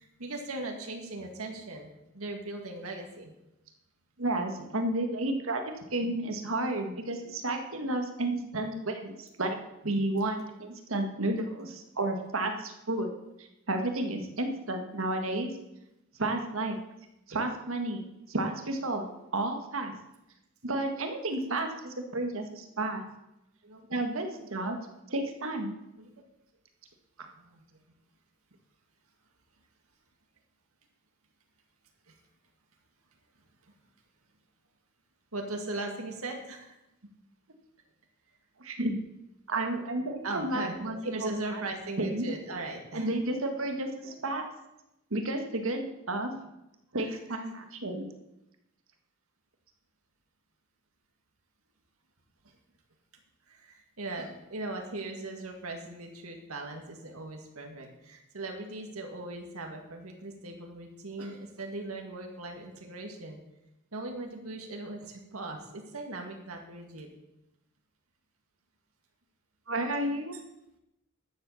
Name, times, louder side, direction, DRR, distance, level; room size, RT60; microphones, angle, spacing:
voice 1, 0.0-1.9 2.1-3.3 23.6-23.9 24.3-24.4 26.0-26.1 27.4-27.8 32.1-32.2 33.7-33.8 35.3-36.8 40.2-43.1 46.9-47.2 53.5-63.4 63.9-67.1, right 2 dB, 90° right, 2 dB, 1.9 m, -39 dB
voice 2, 4.2-9.6 9.8-13.1 13.4-15.5 16.2-16.8 17.3-19.0 19.3-19.9 20.6-23.0 23.9-24.8 25.1-25.7 38.6-39.0 39.5-41.6 42.0-42.3 42.9-44.5 45.1-46.3 46.9-48.1 69.7-70.4, right 2 dB, 70° right, 5 dB, 1.7 m, -32 dB
12.0 x 7.5 x 7.0 m, 0.88 s
head